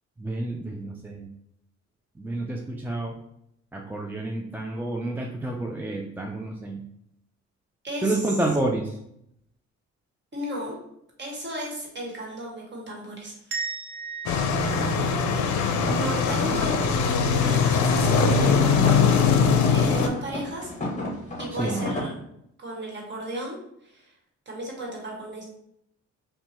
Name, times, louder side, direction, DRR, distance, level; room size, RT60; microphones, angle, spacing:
voice 1, 0.2-1.3 2.2-3.2 3.7-6.8 8.0-8.9 14.9-15.4 16.0-16.2 21.6-21.8, right 2 dB, 5° right, 0 dB, 0.3 m, -29 dB
voice 2, 7.8-8.4 10.3-10.8 11.2-13.6 16.0-18.9 19.2-20.7 21.4-22.2 22.6-23.6 23.8-24.1 24.5-25.6, equal, 35° right, -2 dB, 1.3 m, -34 dB
sound 1, 13.5-16.3, right 5 dB, 70° right, 0.9 m, -37 dB
sound 2, 14.3-20.1, left 5 dB, 75° left, 0.5 m, -21 dB
sound 3, 15.8-22.1, left 1 dB, 25° left, 1.1 m, -33 dB
2.8 x 2.2 x 4.1 m, 0.76 s
cardioid pair, 90°, 30 cm